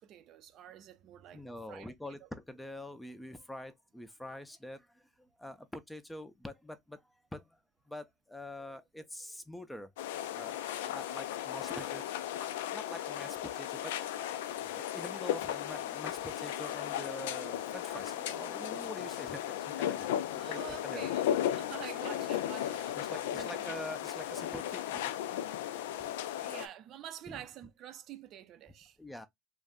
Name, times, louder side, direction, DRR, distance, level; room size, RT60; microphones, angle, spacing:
voice 1, 0.0-1.9 2.2-2.3 20.3-23.0 23.3-23.5 26.4-29.0, right 10 dB, 50° right, 0.5 m, -48 dB
voice 2, 1.3-7.0 7.3-7.5 7.9-9.9 10.3-10.6 10.8-12.0 12.7-13.9 14.6-20.1 20.4-21.1 23.0-25.1 27.3-27.4 29.0-29.3, left 1 dB, 5° left, 0.5 m, -45 dB
sound 1, 10.0-26.7, left 11 dB, 85° left, 0.3 m, -36 dB
2.4 x 2.1 x 3.6 m
supercardioid pair, 105°, 0 cm